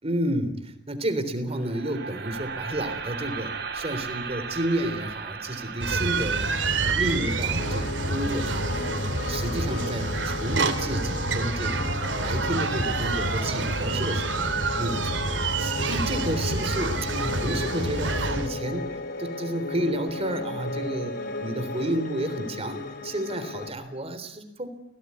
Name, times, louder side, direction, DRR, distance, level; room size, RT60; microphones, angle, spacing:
voice 1, 0.0-6.7 6.9-9.0 9.3-11.9 12.2-14.5 14.8-24.7, right 1 dB, 35° right, 9 dB, 3.6 m, -31 dB
sound 1, 1.5-11.6, right 5 dB, 60° right, 3.8 m, -38 dB
sound 2, 5.8-18.5, right 3 dB, 75° right, 3.1 m, -27 dB
Piano, 7.6-23.7, left 3 dB, 55° left, 3.6 m, -35 dB
29.5 x 18.0 x 9.6 m, 0.82 s
head